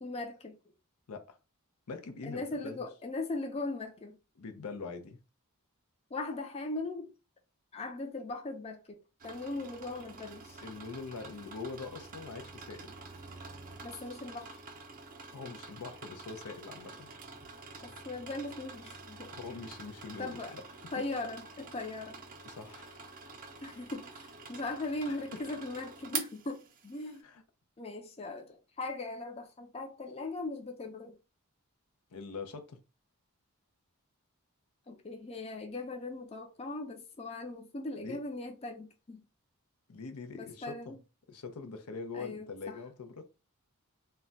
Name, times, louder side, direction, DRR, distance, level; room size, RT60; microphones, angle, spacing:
voice 1, 0.0-0.6 2.3-4.1 6.1-7.1 7.7-9.0 9.2-10.6 13.8-14.6 17.8-19.3 20.2-20.6 20.9-22.2 23.6-27.3 27.8-31.2 34.9-39.2 40.3-41.0 42.1-42.8, left 2 dB, 30° left, 0.5 m, -39 dB
voice 2, 1.9-2.8 4.4-5.2 10.6-13.0 15.3-17.1 19.3-20.6 22.4-23.0 25.1-25.4 27.2-27.4 32.1-32.8 38.0-38.2 39.9-41.0 41.3-43.3, left 4 dB, 90° left, 0.6 m, -43 dB
sound 1, 9.2-27.2, right 5 dB, 40° right, 0.5 m, -47 dB
2.2 x 2.2 x 3.8 m
head